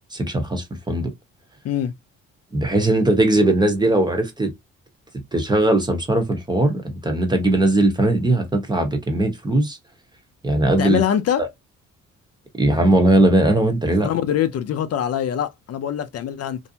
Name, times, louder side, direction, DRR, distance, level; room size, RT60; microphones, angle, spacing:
voice 1, 0.1-1.1 2.5-4.5 5.3-9.8 10.4-11.0 12.6-14.1, right 1 dB, 15° right, 0.8 m, -19 dB
voice 2, 10.8-11.5 14.0-16.6, left 10 dB, 55° left, 0.5 m, -23 dB
2.6 x 2.0 x 2.7 m
cardioid pair, 90°, 30 cm